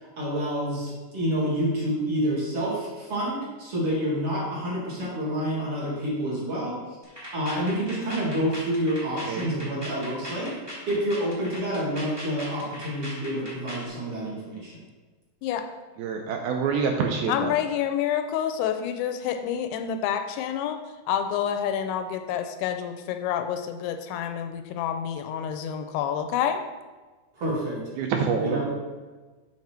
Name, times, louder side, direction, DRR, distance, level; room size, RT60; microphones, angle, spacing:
voice 1, 0.2-6.8 7.3-10.5 10.9-14.7 27.3-27.8 28.4-28.7, equal, 45° right, -6 dB, 2.3 m, -28 dB
sound 1, 7.0-13.9, equal, 15° right, 0.8 m, -39 dB
voice 2, 16.0-17.6 28.0-28.7, right 5 dB, 80° right, 3 dB, 2.3 m, -26 dB
voice 3, 17.3-20.8 21.1-26.6, left 9 dB, 85° left, 7 dB, 2.5 m, -28 dB
7.3 x 6.1 x 4.3 m, 1.3 s
omnidirectional pair, 4.7 m